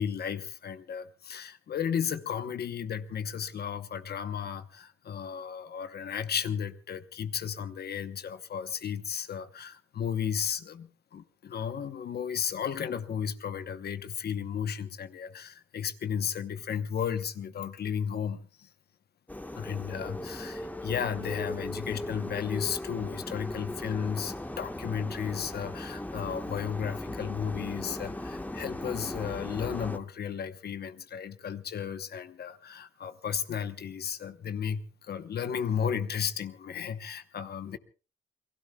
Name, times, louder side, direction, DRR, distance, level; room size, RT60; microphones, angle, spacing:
voice 1, 0.0-18.7 19.5-37.8, left 8 dB, 55° left, 1.0 m, -34 dB
sound 1, 19.3-30.0, left 1 dB, 10° left, 1.4 m, -38 dB
28.5 x 19.5 x 2.3 m
cardioid pair, 90°, 20 cm